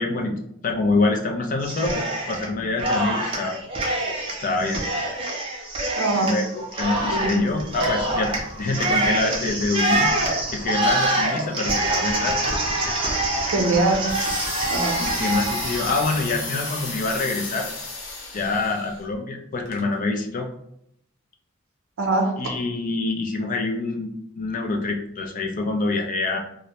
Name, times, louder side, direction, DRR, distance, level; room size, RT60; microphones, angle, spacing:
voice 1, 0.0-3.6 4.4-4.8 6.2-10.1 10.5-12.4 15.0-17.7 18.3-20.5 22.4-26.4, left 3 dB, 40° left, 2 dB, 0.4 m, -26 dB
Cheering, 1.6-2.5 2.8-17.1, right 1 dB, 25° right, 0.5 m, -25 dB
voice 2, 6.0-6.4 7.1-7.5 13.4-14.0 14.7-15.0 22.0-22.4, right 2 dB, 80° right, 2 dB, 0.5 m, -22 dB
sound 1, 14.1-19.0 19.7-19.8, left 3 dB, 75° left, 0.7 m, -33 dB
2.5 x 2.0 x 2.8 m, 0.74 s
head